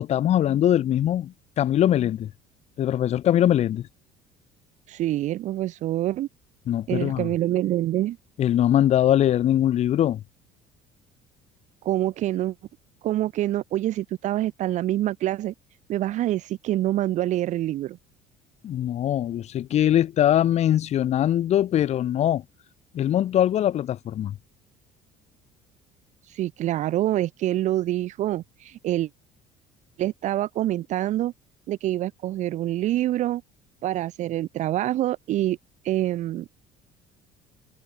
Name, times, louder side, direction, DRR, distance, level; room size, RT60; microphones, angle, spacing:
voice 1, 0.0-2.3 2.8-3.9 6.7-7.3 8.4-10.2 18.6-22.4 22.9-24.3, left 11 dB, 55° left, 4.5 m, -22 dB
voice 2, 4.9-6.3 6.9-8.2 11.8-12.5 13.0-15.5 15.9-18.0 26.3-29.1 30.0-31.3 31.7-33.4 33.8-35.6 35.8-36.4, right 14 dB, 60° right, 2.9 m, -26 dB
cardioid pair, 110°, 14 cm